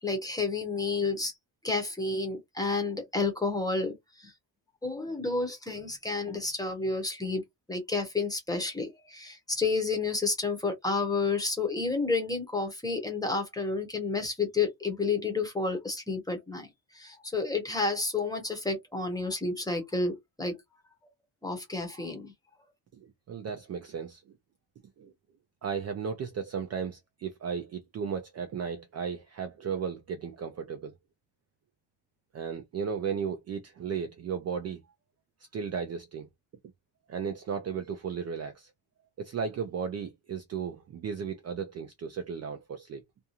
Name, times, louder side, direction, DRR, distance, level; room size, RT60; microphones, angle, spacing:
voice 1, 0.0-1.3 1.6-4.3 4.8-7.4 7.7-16.7 16.9-20.6 21.4-22.3, left 3 dB, 10° left, 0.8 m, -30 dB
voice 2, 22.9-24.2 25.0-25.1 25.6-30.9 32.3-34.8 35.5-36.3 37.1-38.7 39.2-43.0, right 6 dB, 40° right, 0.4 m, -35 dB
2.5 x 2.3 x 2.8 m
cardioid pair, 175°, 43 cm